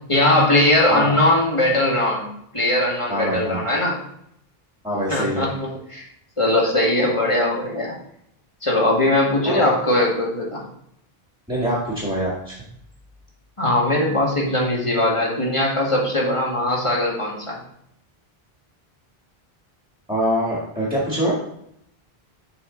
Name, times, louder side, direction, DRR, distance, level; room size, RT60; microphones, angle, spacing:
voice 1, 0.1-2.3 2.5-4.0 5.1-6.0 6.4-7.9 8.6-10.6 13.6-17.6, left 1 dB, 30° left, -4 dB, 1.9 m, -20 dB
voice 2, 0.9-1.2 3.1-3.6 4.8-5.5 9.5-9.7 11.5-12.5 20.1-21.4, equal, 5° right, -6 dB, 1.8 m, -24 dB
6.8 x 5.6 x 3.9 m, 0.73 s
omnidirectional pair, 1.1 m